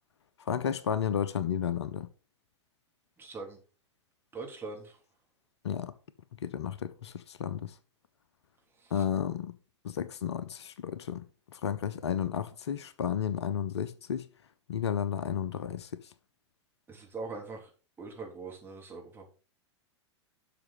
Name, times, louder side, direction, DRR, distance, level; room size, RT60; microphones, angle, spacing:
voice 1, 0.5-2.1 5.6-5.9 6.4-7.7 8.9-9.5 9.8-11.2 11.5-14.3 14.7-15.9, left 8 dB, 65° left, 0.8 m, -32 dB
voice 2, 3.2-3.6 4.3-4.9 16.9-17.7 18.0-19.3, right 3 dB, 15° right, 3.7 m, -41 dB
12.0 x 6.0 x 4.2 m
figure-of-eight pair, 95°, 15 cm